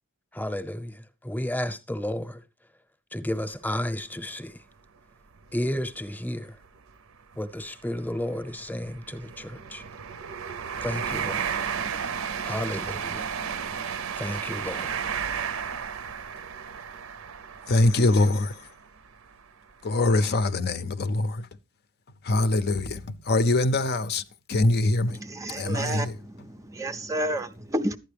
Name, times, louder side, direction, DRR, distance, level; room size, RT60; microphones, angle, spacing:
voice 1, 0.3-2.4 3.1-4.6 5.5-6.6 7.4-9.8 10.8-11.6 12.4-13.3 14.2-15.0, left 1 dB, 10° left, 0.8 m, -32 dB
sound 1, 3.4-3.6 4.1-4.2 5.4-5.5 5.8-6.0 6.6-19.3 19.9-20.1, right 7 dB, 75° right, 0.6 m, -33 dB
voice 2, 17.7-18.6 19.8-21.5 22.2-24.2 24.5-25.2 25.5-26.2, left 2 dB, 50° left, 0.5 m, -23 dB
voice 3, 25.2-26.1 26.7-28.0, right 1 dB, 15° right, 0.4 m, -30 dB
11.5 x 9.1 x 3.3 m
head